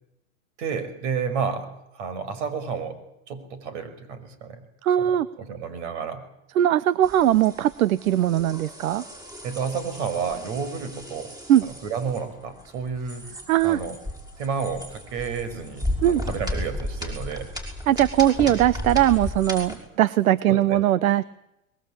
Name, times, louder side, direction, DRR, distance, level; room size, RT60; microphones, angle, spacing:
voice 1, 0.6-1.7 1.9-4.6 5.0-6.3 9.4-11.3 11.6-13.4 13.6-14.0 14.4-17.5 20.5-20.8, right 6 dB, 55° right, 11 dB, 5.6 m, -31 dB
voice 2, 4.8-5.3 6.6-9.0 11.5-11.6 13.5-13.8 16.0-16.2 17.9-21.2, right 12 dB, 75° right, 18 dB, 0.9 m, -20 dB
sound 1, 7.0-19.8, left 1 dB, 10° right, 5.7 m, -35 dB
23.0 x 21.0 x 8.9 m, 0.85 s
hypercardioid pair, 130°, 42 cm